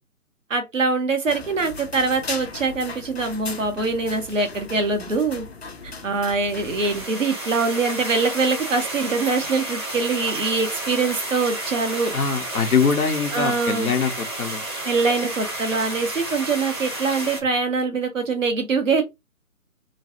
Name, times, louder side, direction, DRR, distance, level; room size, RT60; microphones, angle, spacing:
voice 1, 0.5-5.4 6.0-12.1 12.6-12.7 13.3-13.9 14.8-19.0, right 4 dB, 60° right, 1.1 m, -23 dB
sound 1, 1.3-7.1, left 4 dB, 45° left, 0.6 m, -37 dB
sound 2, 6.5-17.4, right 1 dB, 20° right, 0.7 m, -31 dB
voice 2, 12.1-14.6, left 5 dB, 70° left, 0.9 m, -23 dB
3.1 x 2.2 x 2.8 m
figure-of-eight pair, 145°, 44 cm